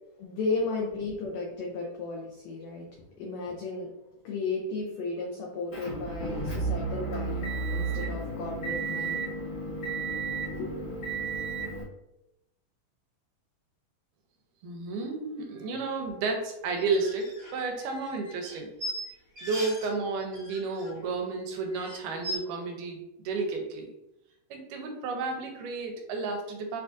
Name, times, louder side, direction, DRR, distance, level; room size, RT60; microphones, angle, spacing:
voice 1, 0.0-2.9 3.2-3.9 4.2-9.3 9.6-9.7 10.5-10.7, left 3 dB, 85° left, -1 dB, 1.5 m, -34 dB
Motor vehicle (road) / Engine, 5.7-11.8, right 3 dB, 45° left, 0.8 m, -32 dB
voice 2, 14.6-18.7 19.4-23.9 24.5-26.8, right 3 dB, 80° right, 3 dB, 2.1 m, -32 dB
sound 1, 16.8-19.9 20.2-21.1 21.4-21.5 21.7-22.4, equal, 60° right, 0.8 m, -39 dB
6.3 x 2.5 x 2.4 m, 0.89 s
omnidirectional pair, 3.8 m